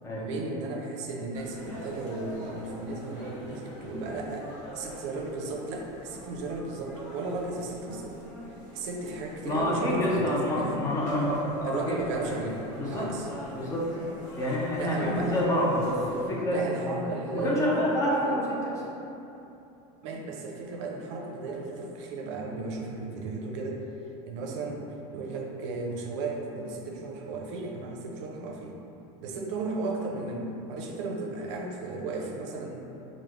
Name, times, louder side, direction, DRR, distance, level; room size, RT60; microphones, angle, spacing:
voice 1, 0.1-8.1 8.7-10.8 11.6-13.3 14.4-14.5 14.8-15.4 16.5-17.7 17.9-18.4 20.0-23.8 24.3-24.9 25.1-28.7 29.2-32.8, right 3 dB, 70° right, 0 dB, 0.5 m, -35 dB
sound 1, 1.3-16.3, equal, 65° left, 1.0 m, -45 dB
voice 2, 9.4-12.4 12.8-13.1 13.5-13.9 14.4-18.9, left 1 dB, 20° left, -4 dB, 0.3 m, -28 dB
3.4 x 2.0 x 3.0 m, 2.9 s
supercardioid pair, 155°, 16 cm